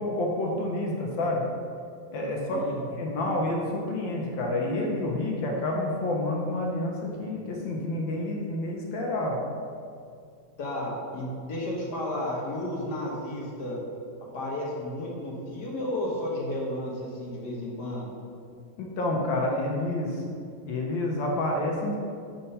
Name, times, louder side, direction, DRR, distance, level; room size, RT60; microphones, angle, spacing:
voice 1, 0.0-1.5 2.1-2.6 3.0-9.4 18.8-20.2 20.7-22.0, left 1 dB, 80° left, -1 dB, 1.5 m, -29 dB
voice 2, 10.6-13.8 14.3-18.1, left 1 dB, 60° left, -4 dB, 1.8 m, -32 dB
5.6 x 4.4 x 5.4 m, 2.4 s
omnidirectional pair, 2.1 m